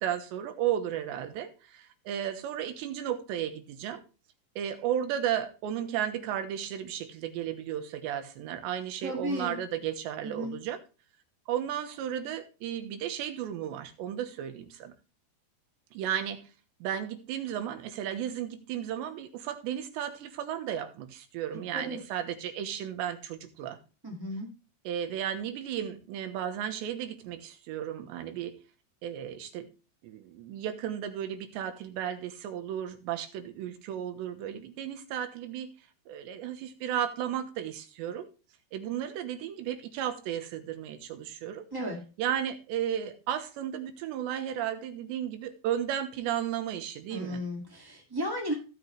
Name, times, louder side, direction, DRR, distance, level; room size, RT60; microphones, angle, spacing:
voice 1, 0.0-4.0 4.6-10.8 11.5-14.9 15.9-16.4 16.8-23.8 24.9-28.6 29.0-29.7 30.0-35.7 36.1-38.3 38.7-41.6 42.2-47.4, right 10 dB, 85° right, 8 dB, 3.4 m, -34 dB
voice 2, 9.0-9.6 10.2-10.6 21.7-22.0 24.0-24.5 41.7-42.0 47.1-48.5, equal, 30° right, -1 dB, 0.4 m, -34 dB
17.0 x 6.3 x 3.3 m, 0.33 s
omnidirectional pair, 5.0 m